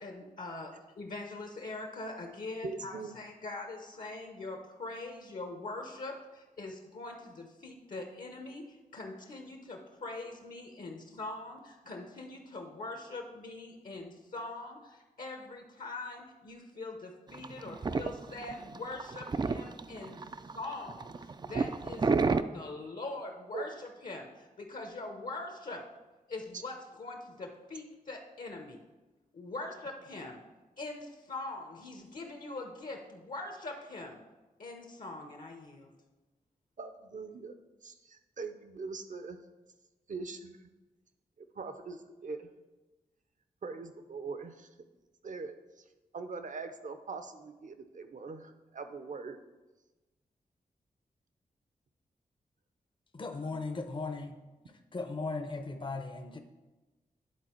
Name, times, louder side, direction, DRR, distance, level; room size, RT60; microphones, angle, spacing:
voice 1, 0.0-20.2 20.5-25.9 26.3-28.8 29.3-30.4 30.8-34.2 34.6-35.9, left 2 dB, 60° left, 3 dB, 1.0 m, -43 dB
voice 2, 2.6-3.2 22.1-22.3 23.5-23.6 26.5-26.6 36.8-37.5 37.8-39.4 40.1-40.6 41.5-42.5 43.6-44.7 45.2-45.8 46.1-49.4, right 4 dB, 55° right, 9 dB, 0.7 m, -41 dB
sound 1, 17.3-22.4, right 4 dB, 30° right, 0.3 m, -31 dB
voice 3, 53.1-54.4 54.9-56.4, left 3 dB, 35° left, 6 dB, 0.7 m, -37 dB
10.5 x 3.8 x 4.5 m, 1.1 s
cardioid pair, 55°, 15 cm